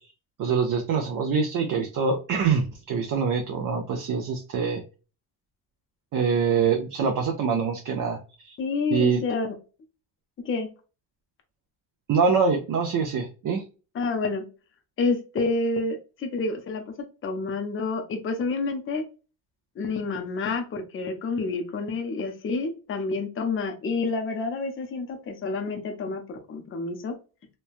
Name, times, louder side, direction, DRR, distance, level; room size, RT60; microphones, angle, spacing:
voice 1, 0.4-4.8 6.1-8.2 8.4-8.5 8.9-9.2 12.1-13.6, right 5 dB, 45° right, 2 dB, 0.6 m, -24 dB
voice 2, 8.6-9.5 10.4-10.7 13.9-14.4 15.0-16.8 17.2-19.0 19.8-27.1, left 3 dB, 30° left, 4 dB, 0.6 m, -28 dB
3.1 x 2.2 x 2.4 m, 0.34 s
cardioid pair, 135°, 43 cm